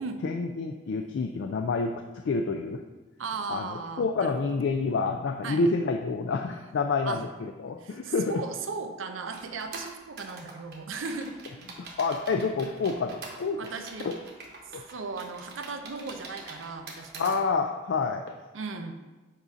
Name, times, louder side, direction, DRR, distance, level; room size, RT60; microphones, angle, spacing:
voice 1, 0.2-2.8 3.5-8.4 11.8-13.7 14.0-14.2 14.7-14.8 17.2-18.2, left 4 dB, 65° left, 4 dB, 0.3 m, -28 dB
voice 2, 3.2-4.6 5.4-5.7 7.1-7.2 7.8-11.3 13.6-14.1 14.9-17.4 18.5-19.0, right 4 dB, 85° right, 7 dB, 0.6 m, -37 dB
sound 1, 9.3-17.4, right 3 dB, 55° right, 0.9 m, -44 dB
7.3 x 2.7 x 5.0 m, 1.2 s
head